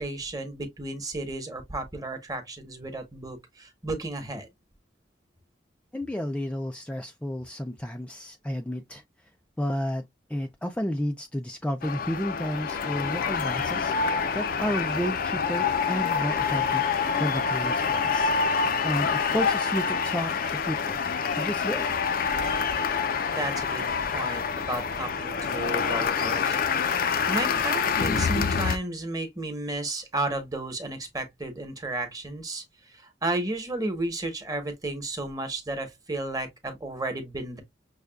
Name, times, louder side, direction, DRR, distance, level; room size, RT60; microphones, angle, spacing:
voice 1, 0.0-4.5 23.3-26.6 27.3-32.6 32.9-37.6, right 2 dB, 20° right, 1.1 m, -33 dB
voice 2, 5.9-9.0 9.6-10.0 10.3-16.8 17.2-18.3 18.8-21.0 21.4-21.9, equal, 5° left, 0.4 m, -31 dB
sound 1, 11.8-28.8, left 6 dB, 55° left, 0.6 m, -26 dB
6.4 x 2.3 x 2.3 m
head